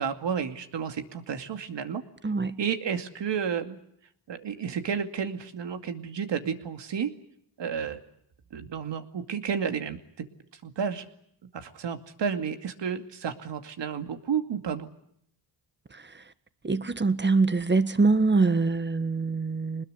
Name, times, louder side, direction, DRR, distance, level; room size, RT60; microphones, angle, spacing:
voice 1, 0.0-2.0 2.6-3.8 4.3-7.1 7.6-8.0 8.5-10.0 10.6-11.1 11.5-14.9, right 7 dB, 60° right, 2.5 m, -31 dB
voice 2, 2.2-2.5 16.6-19.8, right 3 dB, 20° right, 1.5 m, -24 dB
23.5 x 20.5 x 9.6 m
cardioid pair, 80°, 48 cm